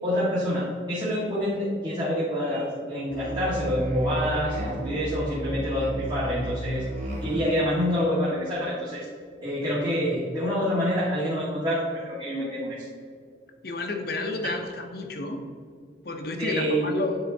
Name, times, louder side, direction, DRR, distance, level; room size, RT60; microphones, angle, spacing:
voice 1, 0.0-6.8 7.2-9.1 9.4-12.8 16.4-16.9, equal, 25° right, -9 dB, 1.5 m, -27 dB
Musical instrument, 3.1-7.6, equal, 40° right, 1.5 m, -34 dB
voice 2, 13.6-15.4 16.0-17.2, left 2 dB, 55° left, 4 dB, 0.8 m, -30 dB
9.8 x 3.8 x 4.0 m, 2.1 s
head